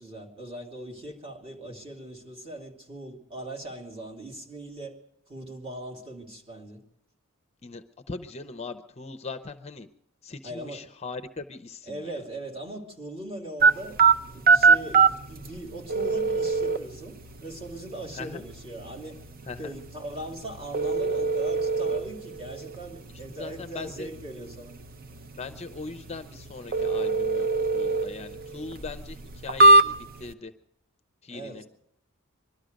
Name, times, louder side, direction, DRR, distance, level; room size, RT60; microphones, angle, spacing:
voice 1, 0.0-5.0 5.3-6.8 10.4-10.8 11.9-14.0 14.3-19.2 19.6-24.8 31.3-31.7, right 1 dB, 30° right, -2 dB, 2.7 m, -40 dB
voice 2, 7.6-9.9 10.2-12.2 18.2-18.4 19.5-19.7 23.4-24.1 25.4-27.5 27.7-30.5 31.2-31.6, left 4 dB, 30° left, 9 dB, 0.6 m, -40 dB
sound 1, 13.6-30.3, right 3 dB, 45° right, 0.7 m, -24 dB
22.0 x 13.0 x 5.1 m, 0.77 s
head